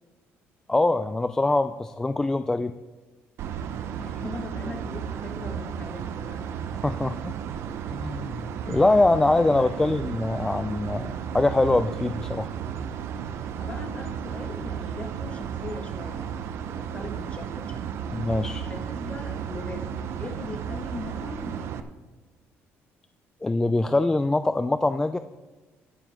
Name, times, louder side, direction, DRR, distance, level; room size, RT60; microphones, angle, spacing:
voice 1, 0.7-2.7 6.8-7.3 7.9-12.5 18.1-18.6 23.4-25.2, left 2 dB, 10° left, 10 dB, 0.3 m, -23 dB
sound 1, 3.4-21.8, right 8 dB, 70° right, 0.8 m, -34 dB
voice 2, 4.0-6.5 7.0-7.1 8.6-8.8 9.5-9.8 13.6-17.8 18.6-21.8, left 3 dB, 30° left, 3 dB, 1.6 m, -40 dB
22.0 x 7.3 x 3.6 m, 1.3 s
cardioid pair, 145°, 5 cm